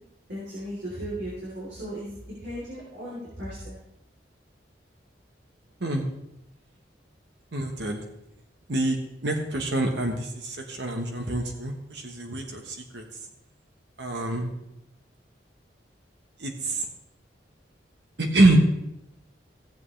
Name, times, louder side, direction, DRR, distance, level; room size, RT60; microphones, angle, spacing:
voice 1, 0.3-3.8, equal, 90° right, -7 dB, 3.8 m, -36 dB
voice 2, 7.5-8.0 8.7-13.0 14.0-14.5 16.4-16.9 18.2-18.6, right 2 dB, 75° right, 3 dB, 1.3 m, -26 dB
16.5 x 7.8 x 3.3 m, 0.83 s
head